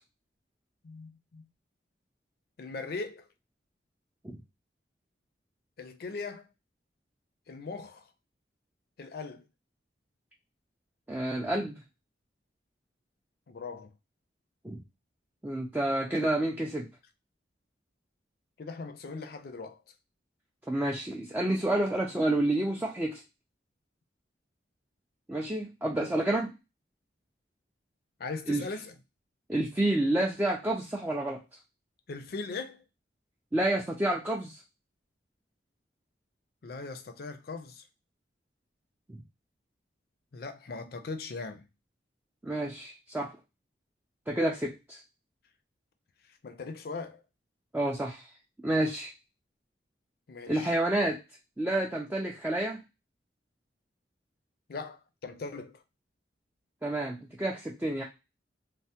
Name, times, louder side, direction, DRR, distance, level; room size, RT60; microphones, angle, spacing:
voice 1, 0.8-1.5 2.6-3.3 5.8-6.5 7.5-8.1 9.0-9.4 13.5-13.9 18.6-19.8 26.0-26.1 28.2-29.0 32.1-32.8 36.6-37.9 40.3-41.7 46.3-47.2 50.3-50.7 54.7-55.8, left 4 dB, 55° left, 0.4 m, -39 dB
voice 2, 11.1-11.8 14.6-14.8 15.4-16.9 20.7-23.2 25.3-26.5 28.5-28.6 29.5-31.4 33.5-34.6 39.1-39.2 42.4-43.3 44.3-45.0 47.7-48.3 48.6-49.1 50.5-51.2 51.6-52.8 56.8-58.0, right 1 dB, 10° right, 0.3 m, -29 dB
3.2 x 2.0 x 2.7 m
head